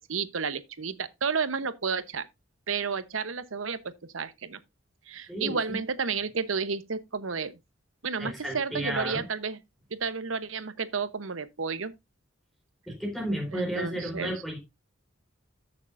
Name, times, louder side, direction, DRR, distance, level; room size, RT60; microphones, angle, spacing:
voice 1, 0.1-2.3 2.7-4.6 5.1-7.6 8.0-9.6 10.0-11.9 13.5-14.3, right 5 dB, 85° right, 1.0 m, -31 dB
voice 2, 5.3-5.8 8.2-9.2 12.9-14.6, right 1 dB, ahead, 4.6 m, -33 dB
14.0 x 6.6 x 2.6 m
head